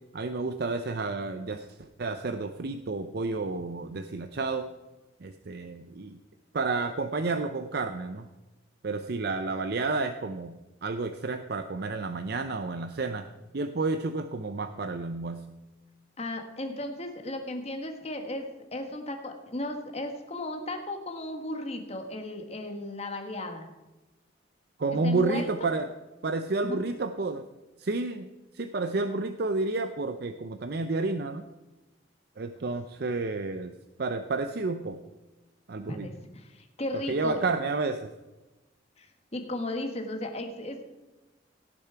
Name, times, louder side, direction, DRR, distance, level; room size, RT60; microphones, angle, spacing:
voice 1, 0.1-1.7 2.0-4.7 5.2-6.2 6.5-8.3 8.8-13.3 13.5-15.4 24.8-25.9 26.2-27.4 27.8-31.4 32.4-33.7 34.0-35.0 35.7-36.1 37.1-38.1, right 3 dB, 55° right, 8 dB, 0.5 m, -30 dB
voice 2, 16.2-18.4 18.7-23.7 25.0-25.5 26.6-26.8 35.9-37.5 39.0-40.8, left 1 dB, 35° left, 4 dB, 1.5 m, -35 dB
17.0 x 7.1 x 4.6 m, 1.1 s
head